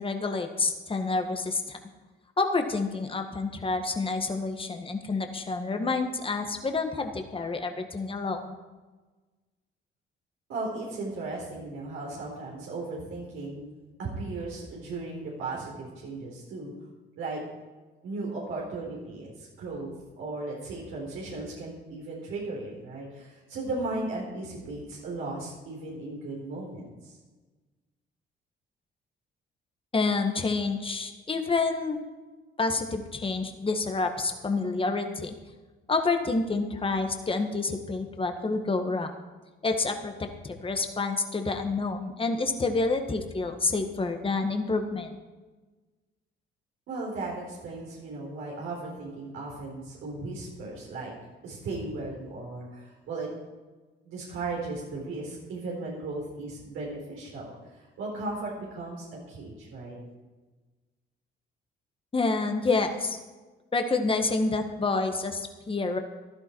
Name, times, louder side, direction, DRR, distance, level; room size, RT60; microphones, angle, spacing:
voice 1, 0.0-1.8 2.4-8.5 29.9-32.0 32.6-35.3 35.9-39.1 39.6-40.1 40.4-45.1 62.1-63.2 63.7-66.0, left 3 dB, 25° left, 5 dB, 1.8 m, -28 dB
voice 2, 10.5-13.7 14.0-16.7 17.2-17.4 18.0-27.2 46.9-51.1 51.4-53.3 54.0-60.0, right 2 dB, 85° right, -4 dB, 4.1 m, -36 dB
15.0 x 11.5 x 4.7 m, 1.3 s
cardioid pair, 90°, 20 cm